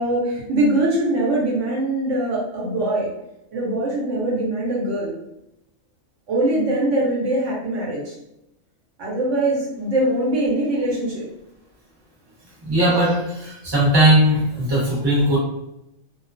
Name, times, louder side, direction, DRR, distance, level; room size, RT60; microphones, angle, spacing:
voice 1, 0.0-3.1 3.5-5.1 6.3-8.2 9.0-11.2, right 1 dB, 65° right, -5 dB, 1.0 m, -22 dB
voice 2, 12.6-15.4, right 1 dB, 20° right, -6 dB, 0.8 m, -18 dB
2.3 x 2.2 x 2.4 m, 0.85 s
omnidirectional pair, 1.4 m